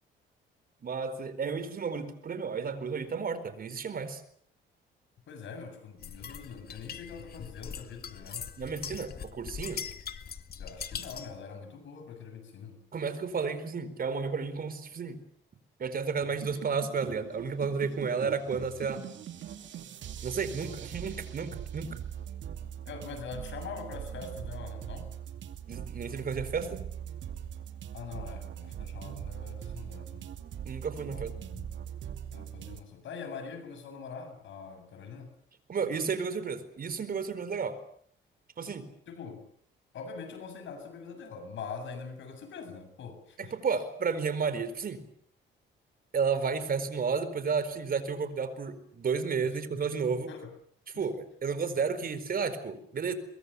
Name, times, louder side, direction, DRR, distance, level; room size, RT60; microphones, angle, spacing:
voice 1, 0.8-4.2 8.6-9.8 12.9-15.2 15.8-19.0 20.2-22.0 25.7-26.8 30.6-31.4 35.7-37.8 38.6-38.9 43.4-45.0 46.1-50.3 51.0-53.1, right 5 dB, 50° right, 12 dB, 4.5 m, -32 dB
voice 2, 5.3-8.5 10.6-12.8 22.9-25.1 27.9-30.3 31.0-31.7 32.3-35.3 39.1-39.5 39.9-43.5 49.5-49.8 50.3-50.5 50.9-51.1, left 5 dB, 70° left, 8 dB, 7.6 m, -43 dB
sound 1, 6.0-11.4, left 7 dB, 50° left, 2.1 m, -41 dB
sound 2, 16.2-32.8, right 9 dB, 70° right, 2.6 m, -41 dB
23.0 x 23.0 x 8.4 m, 0.63 s
cardioid pair, 90°, 20 cm